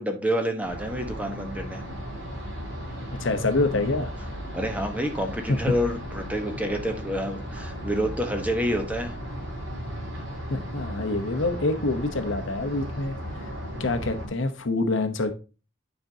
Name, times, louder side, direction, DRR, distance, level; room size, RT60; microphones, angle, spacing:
voice 1, 0.0-1.8 4.5-9.1, equal, 5° right, 1.0 m, -28 dB
sound 1, 0.6-14.3, equal, 70° right, 3.4 m, -36 dB
voice 2, 3.2-4.2 5.5-5.8 10.5-13.5 13.8-15.3, left 2 dB, 70° left, 0.9 m, -26 dB
9.1 x 5.3 x 2.8 m
head